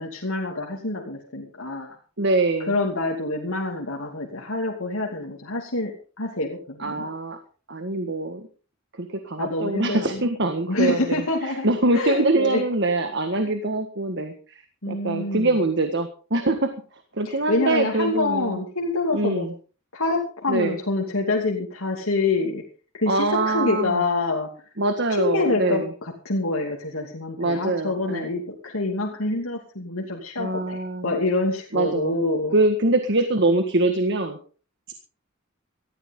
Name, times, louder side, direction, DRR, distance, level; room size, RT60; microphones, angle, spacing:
voice 1, 0.0-2.0 2.7-7.1 9.4-10.2 10.7-11.7 11.9-12.6 13.4-13.5 14.8-15.5 17.2-19.5 19.9-22.6 22.9-24.5 25.2-32.6, left 2 dB, 85° left, -1 dB, 2.8 m, -26 dB
voice 2, 2.2-2.7 6.8-7.4 7.7-8.5 9.0-18.6 19.1-19.5 20.5-20.8 23.1-24.0 24.8-25.9 27.4-28.3 30.4-31.2 31.7-32.2 32.5-34.4 34.9-35.0, right 2 dB, 55° right, 7 dB, 1.7 m, -24 dB
18.5 x 14.5 x 3.8 m, 0.38 s
head